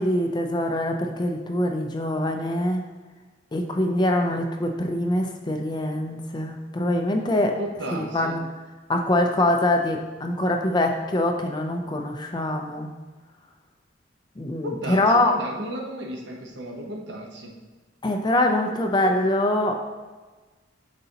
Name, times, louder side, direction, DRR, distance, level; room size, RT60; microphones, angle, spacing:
voice 1, 0.0-2.8 3.5-7.6 8.1-8.4 8.9-12.9 14.4-15.3 18.0-19.8, left 1 dB, 20° left, 3 dB, 0.4 m, -24 dB
voice 2, 7.6-8.4 14.6-17.5, right 1 dB, 60° right, 1 dB, 0.9 m, -34 dB
9.5 x 4.0 x 2.8 m, 1.3 s
head